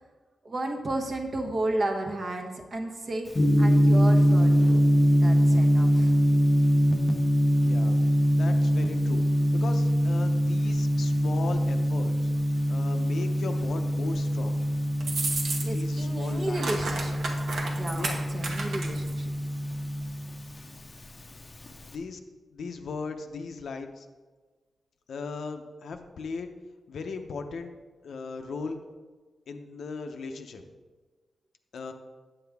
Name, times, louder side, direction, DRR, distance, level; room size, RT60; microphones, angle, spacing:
voice 1, 0.4-3.3 3.6-4.8 5.2-6.1 15.6-17.2 17.7-19.3, right 2 dB, 40° right, 2 dB, 1.0 m, -33 dB
Gong, 3.3-21.9, equal, 25° left, 0.7 m, -24 dB
voice 2, 7.6-8.0 8.3-9.2 9.5-12.3 12.7-14.6 15.7-16.8 18.0-18.2 21.9-22.2 22.5-24.1 25.1-26.5 26.9-27.8 28.0-28.8 29.5-30.6 31.7-31.9, left 4 dB, 70° left, 6 dB, 0.6 m, -37 dB
sound 1, 15.0-15.9 16.2-19.1, right 3 dB, 65° right, 1.2 m, -32 dB
8.9 x 7.9 x 3.5 m, 1.4 s
wide cardioid pair, 155°, 0 cm